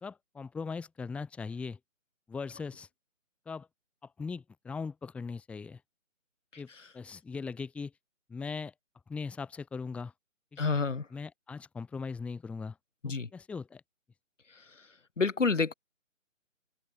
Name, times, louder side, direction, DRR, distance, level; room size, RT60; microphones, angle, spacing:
voice 1, 0.0-1.8 2.3-2.9 3.5-3.7 4.0-5.8 6.6-6.7 6.9-7.9 8.3-8.7 9.1-10.1 10.5-10.6 11.1-12.8 13.0-13.8, left 5 dB, 5° left, 1.9 m, -39 dB
voice 2, 10.6-11.0 13.0-13.3 15.2-15.7, left 4 dB, 65° left, 2.7 m, -28 dB
open air
figure-of-eight pair, 150°, 40 cm